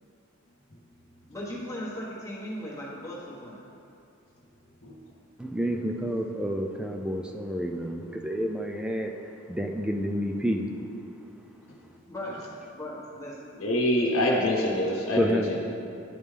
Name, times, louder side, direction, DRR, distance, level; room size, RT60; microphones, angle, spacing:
voice 1, 1.3-3.6 12.1-12.5 12.7-13.5 13.9-14.1, equal, 15° left, -6 dB, 1.3 m, -37 dB
voice 2, 5.4-9.1 9.5-10.6 15.2-15.6, equal, 5° right, 2 dB, 0.3 m, -29 dB
voice 3, 13.6-15.6, left 1 dB, 75° left, -4 dB, 0.9 m, -25 dB
11.0 x 5.3 x 3.3 m, 2.6 s
head